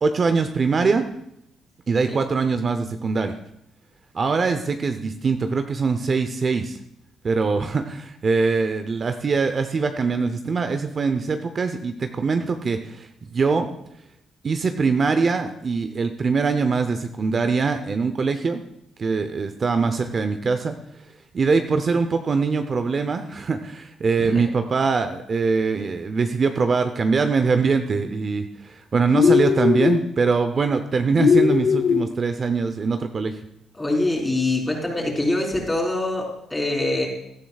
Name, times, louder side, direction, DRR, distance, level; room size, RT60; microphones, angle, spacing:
voice 1, 0.0-1.0 1.9-3.3 4.1-6.8 7.2-13.7 14.4-18.6 19.0-20.8 21.3-33.3, right 4 dB, 40° right, 7 dB, 0.7 m, -23 dB
sound 1, 29.1-30.0 31.2-32.1, left 6 dB, 55° left, 0.7 m, -18 dB
voice 2, 33.8-37.1, left 2 dB, 15° left, -1 dB, 3.6 m, -24 dB
16.5 x 11.5 x 2.4 m, 0.77 s
cardioid pair, 90°, 0 cm